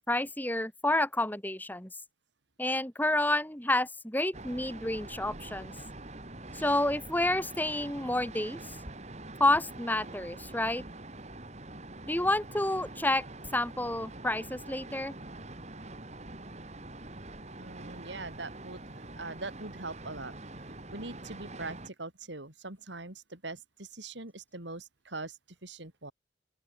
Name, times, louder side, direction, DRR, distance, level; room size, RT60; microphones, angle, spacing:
voice 1, 0.1-1.9 2.6-5.7 6.5-8.8 9.4-10.8 12.1-13.2 13.5-15.1, left 1 dB, 10° left, 4.9 m, -29 dB
sound 1, 4.3-21.9, right 2 dB, 35° right, 2.9 m, -45 dB
voice 2, 17.6-20.3 20.6-26.1, right 3 dB, 70° right, 4.0 m, -42 dB
open air
head